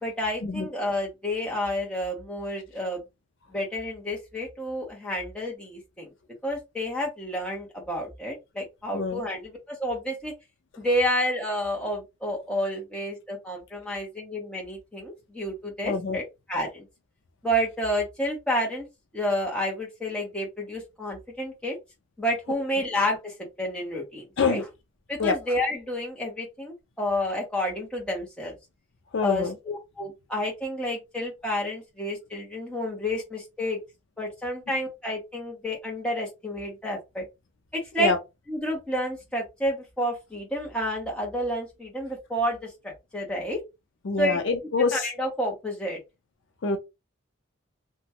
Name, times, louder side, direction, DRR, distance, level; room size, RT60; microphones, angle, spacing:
voice 1, 0.0-3.0 3.5-6.1 6.4-10.3 10.8-16.2 16.5-16.9 17.4-18.9 19.1-21.8 22.2-24.6 25.1-28.5 29.2-33.8 34.2-37.3 37.7-38.1 38.5-43.6 44.2-44.4 44.9-46.0, equal, 5° left, 0.9 m, -30 dB
voice 2, 15.8-16.2 24.4-24.6 25.2-25.4 29.1-29.5 38.0-38.2 44.0-45.1 46.6-46.8, left 4 dB, 60° left, 0.5 m, -25 dB
2.9 x 2.3 x 2.8 m
head